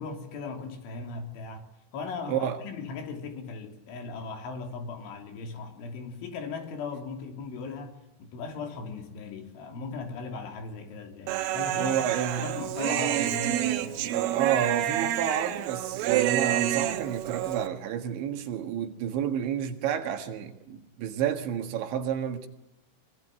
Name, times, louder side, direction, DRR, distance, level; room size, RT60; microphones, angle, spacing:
voice 1, 0.0-1.7 1.9-12.1 12.4-14.1, left 4 dB, 75° left, 5.6 m, -38 dB
voice 2, 2.3-2.6 11.8-12.5 14.0-22.5, right 9 dB, 70° right, 3.9 m, -30 dB
Human voice, 11.3-17.7, right 13 dB, 85° right, 3.9 m, -28 dB
24.0 x 24.0 x 9.2 m
omnidirectional pair, 5.6 m